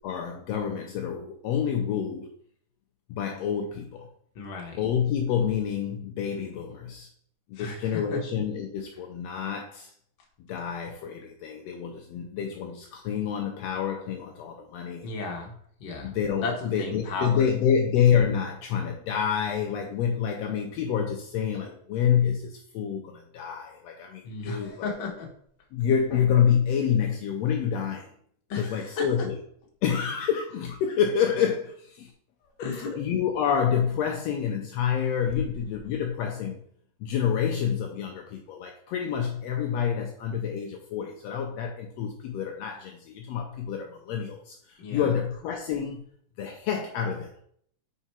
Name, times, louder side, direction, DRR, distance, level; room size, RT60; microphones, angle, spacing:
voice 1, 0.0-2.3 3.1-4.1 4.8-7.1 7.5-9.9 10.5-15.1 16.0-24.9 25.7-28.1 28.6-29.4 29.8-32.1 33.0-36.6 37.0-46.0 46.4-47.3, left 8 dB, 80° left, 2 dB, 1.5 m, -28 dB
voice 2, 4.3-4.8 7.6-8.2 15.0-15.5 15.8-17.5 24.2-25.3 28.5-29.1 32.6-33.0 44.8-45.1, left 3 dB, 55° left, 1 dB, 1.5 m, -34 dB
4.9 x 4.5 x 4.3 m, 0.63 s
omnidirectional pair, 3.5 m